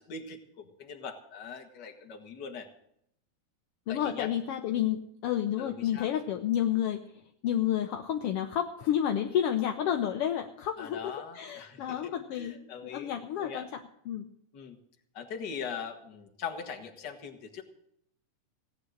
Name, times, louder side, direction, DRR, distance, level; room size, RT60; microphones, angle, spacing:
voice 1, 0.0-2.7 3.9-4.3 5.6-6.1 10.8-13.7 14.5-14.8 15.1-17.6, left 6 dB, 45° left, 4 dB, 1.6 m, -41 dB
voice 2, 3.9-7.0 7.4-14.3, left 10 dB, 75° left, 5 dB, 1.4 m, -30 dB
17.0 x 9.7 x 6.4 m, 0.72 s
omnidirectional pair, 3.5 m